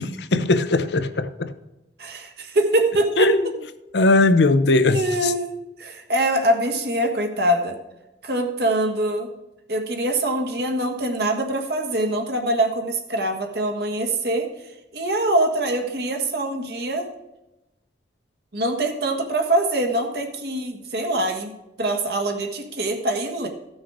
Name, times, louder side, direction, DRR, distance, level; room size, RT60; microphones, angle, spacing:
voice 1, 0.0-1.5 3.2-3.5 3.9-5.3, left 2 dB, 75° left, 11 dB, 0.7 m, -19 dB
voice 2, 2.0-3.3 4.9-5.5 5.8-7.8 8.2-9.3 9.7-14.5 14.9-17.1 18.5-21.5 21.8-23.5, right 1 dB, 65° right, 4 dB, 1.5 m, -23 dB
14.0 x 6.3 x 4.8 m, 0.95 s
head